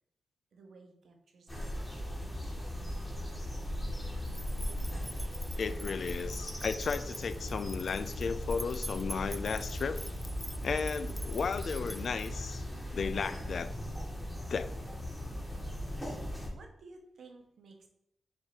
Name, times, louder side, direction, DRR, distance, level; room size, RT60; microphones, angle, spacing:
voice 1, 0.5-2.6 2.9-3.4 16.5-17.9, right 3 dB, 80° right, 3 dB, 1.1 m, -56 dB
sound 1, 1.5-16.5, left 1 dB, 10° left, 1.6 m, -38 dB
sound 2, 4.2-12.6, right 1 dB, 5° right, 0.3 m, -47 dB
voice 2, 5.6-10.0 10.6-12.6 12.9-13.7 14.5-14.7, left 5 dB, 65° left, 13 dB, 0.4 m, -34 dB
7.0 x 2.8 x 5.0 m, 0.76 s
cardioid pair, 85°, 0 cm